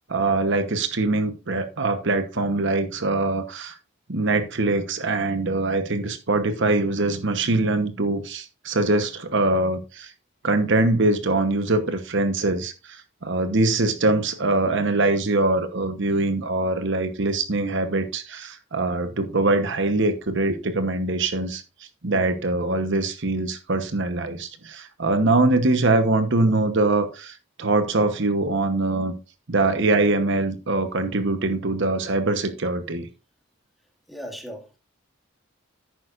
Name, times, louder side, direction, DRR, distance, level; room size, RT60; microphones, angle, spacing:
voice 1, 0.1-3.8 4.1-10.1 10.4-21.6 22.0-29.1 29.5-33.1, right 2 dB, 60° right, 9 dB, 1.0 m, -23 dB
voice 2, 34.1-34.8, equal, ahead, 3 dB, 1.9 m, -37 dB
11.0 x 9.2 x 2.5 m, 0.30 s
head